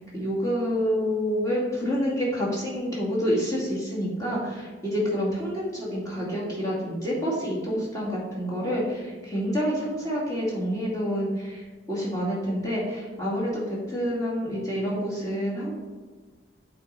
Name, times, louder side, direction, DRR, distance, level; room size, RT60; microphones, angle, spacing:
voice 1, 0.1-15.7, equal, 20° left, -6 dB, 2.1 m, -28 dB
8.6 x 3.9 x 4.3 m, 1.4 s
head